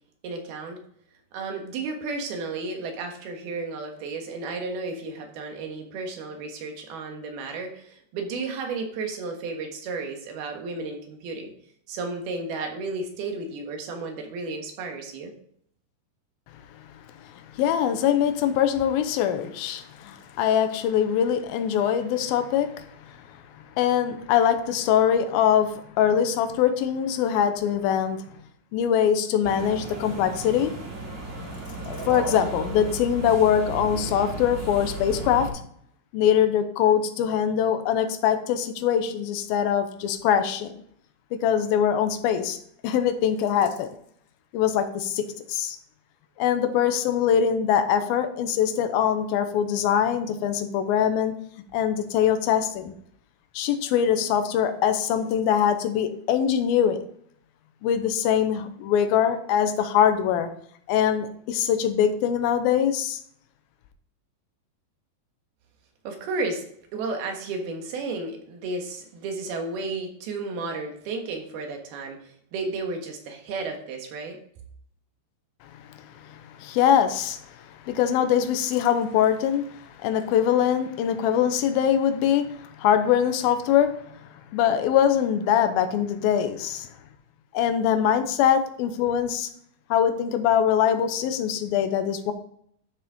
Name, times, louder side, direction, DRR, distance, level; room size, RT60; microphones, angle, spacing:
voice 1, 0.2-0.8 1.3-11.5 11.9-15.3 66.0-66.7 66.9-74.4, right 3 dB, 75° right, 3 dB, 3.4 m, -33 dB
voice 2, 17.2-23.2 23.8-28.2 28.7-30.8 31.9-35.5 36.1-40.7 41.3-42.6 42.8-43.9 44.5-45.8 46.4-51.4 51.7-52.9 53.5-57.0 57.8-60.5 60.9-63.2 75.9-86.9 87.5-89.5 89.9-92.3, left 9 dB, 75° left, 9 dB, 2.6 m, -23 dB
sound 1, 29.4-35.5, right 2 dB, 20° right, 2.4 m, -34 dB
12.5 x 6.5 x 3.7 m, 0.65 s
omnidirectional pair, 4.6 m